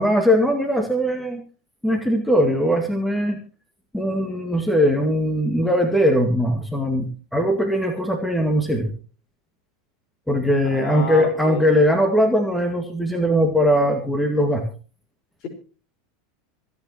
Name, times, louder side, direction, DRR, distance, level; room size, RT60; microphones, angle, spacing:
voice 1, 0.0-1.4 1.8-3.4 3.9-8.9 10.3-14.6, equal, ahead, 5 dB, 2.0 m, -20 dB
voice 2, 10.7-11.6, left 4 dB, 45° left, 6 dB, 4.8 m, -30 dB
26.0 x 9.7 x 3.0 m, 0.37 s
figure-of-eight pair, 80°, 0 cm